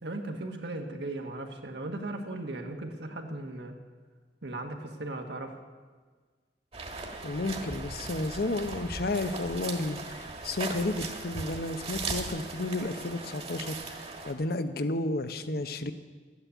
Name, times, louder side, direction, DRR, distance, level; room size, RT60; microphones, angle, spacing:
voice 1, 0.0-3.8 4.4-5.6, right 2 dB, 70° right, 3 dB, 1.5 m, -37 dB
sound 1, 6.7-14.3, right 3 dB, 35° right, 1.6 m, -38 dB
voice 2, 7.2-15.9, left 2 dB, 60° left, 10 dB, 0.8 m, -32 dB
13.0 x 9.6 x 8.3 m, 1.5 s
head